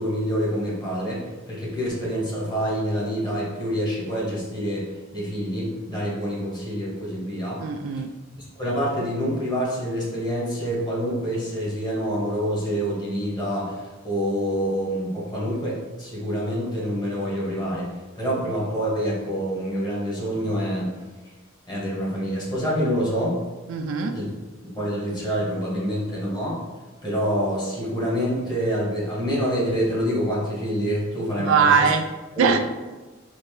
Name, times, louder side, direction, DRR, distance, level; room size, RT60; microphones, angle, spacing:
voice 1, 0.0-4.9 5.1-7.6 8.4-17.9 18.1-20.9 21.7-23.4 24.1-24.3 24.7-26.6 27.0-31.9 32.3-32.5, equal, 20° left, -6 dB, 1.3 m, -26 dB
voice 2, 7.6-8.1 23.7-24.2 31.4-32.0 32.4-32.6, right 6 dB, 70° right, 7 dB, 0.3 m, -20 dB
4.3 x 2.6 x 3.2 m, 1.2 s
head